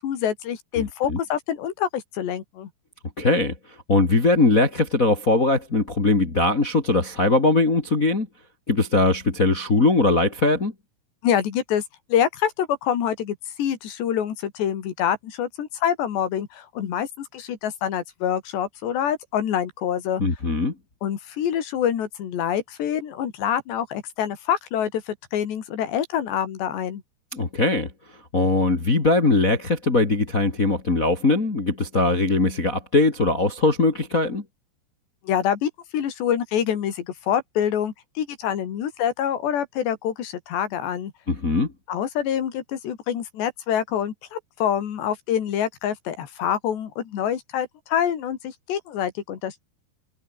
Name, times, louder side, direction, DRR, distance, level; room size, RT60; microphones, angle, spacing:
voice 1, 0.0-2.7 11.2-11.8 12.1-20.2 21.0-27.0 35.2-41.1 41.9-49.6, left 9 dB, 80° left, 4.9 m, -26 dB
voice 2, 0.8-1.2 3.2-3.5 3.9-8.3 8.7-10.7 20.2-20.7 27.3-27.9 28.3-34.4 41.3-41.7, left 2 dB, 25° left, 2.5 m, -20 dB
omnidirectional pair, 4.9 m